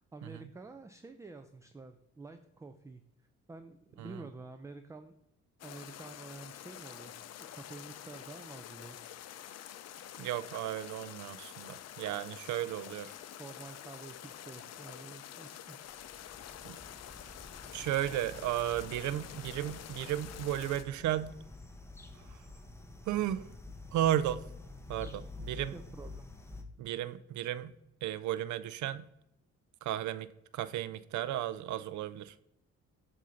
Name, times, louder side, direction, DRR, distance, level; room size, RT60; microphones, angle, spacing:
voice 1, 0.0-3.0 3.5-5.2 5.6-9.0 13.4-16.1 25.7-26.2, right 3 dB, 10° right, 8 dB, 0.3 m, -49 dB
sound 1, 5.6-20.8, left 11 dB, 60° left, 0.5 m, -48 dB
voice 2, 10.2-13.1 16.6-16.8 17.7-21.4 22.2-22.4 23.1-23.5 23.9-24.4 24.9-25.8 26.8-27.8 28.0-29.1 29.8-32.4, right 12 dB, 70° right, 16 dB, 0.5 m, -34 dB
sound 2, 15.9-26.6, left 2 dB, 10° left, 0.7 m, -49 dB
7.4 x 2.7 x 5.7 m, 0.83 s
cardioid pair, 90°, 30 cm